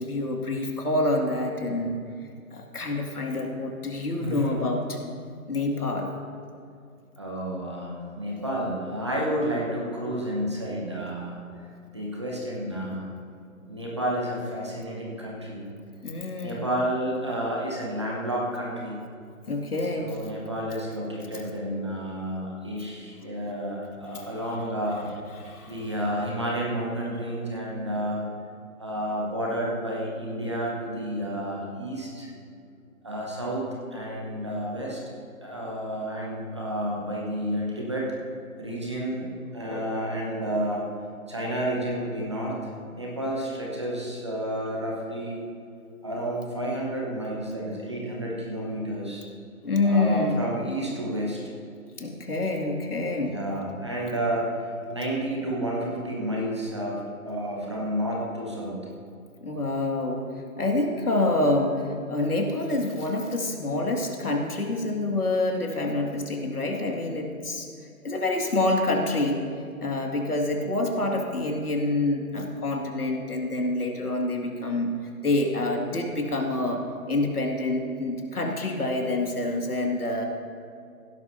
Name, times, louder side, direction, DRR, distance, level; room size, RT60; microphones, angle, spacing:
voice 1, 0.0-2.0 2.5-5.0 5.5-6.1 16.0-16.6 19.5-20.2 23.4-23.5 24.1-24.3 25.4-25.9 49.6-50.4 52.0-53.4 59.4-60.2 60.6-61.8 62.1-67.7 68.0-69.4 69.8-74.9 75.2-76.8 77.1-80.3, left 2 dB, 80° left, 1 dB, 2.3 m, -27 dB
voice 2, 4.2-4.6 7.2-11.4 11.9-13.1 13.7-15.6 16.4-19.0 19.8-25.1 25.6-28.3 28.8-32.3 33.0-35.0 35.4-38.1 38.6-40.8 41.3-42.6 42.9-45.4 46.0-49.2 49.8-51.5 53.2-58.8, right 1 dB, 20° right, -3 dB, 1.0 m, -30 dB
16.5 x 12.0 x 2.7 m, 2.4 s
figure-of-eight pair, 170°, 44 cm